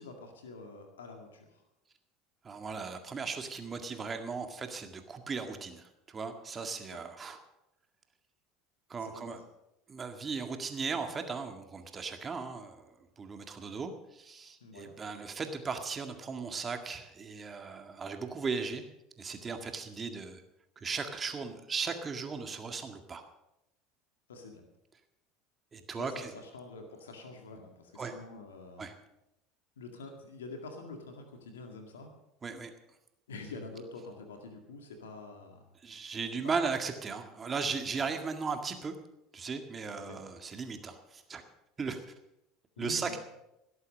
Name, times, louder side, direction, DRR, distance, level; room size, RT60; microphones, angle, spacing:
voice 1, 0.0-1.6 6.9-7.0 9.0-9.4 14.6-14.9 24.3-24.6 25.9-28.8 29.8-32.1 33.3-35.6 40.0-40.2 42.8-43.2, left 3 dB, 85° left, 4 dB, 2.0 m, -46 dB
voice 2, 2.4-7.4 8.9-9.4 9.9-18.8 19.2-20.4 20.8-23.2 25.7-26.3 28.0-28.1 28.8-28.9 32.4-32.7 35.8-38.9 39.3-41.4 41.8-42.0 42.8-43.2, right 5 dB, 30° right, 6 dB, 1.9 m, -37 dB
18.0 x 8.3 x 6.5 m, 0.88 s
hypercardioid pair, 75°, 0 cm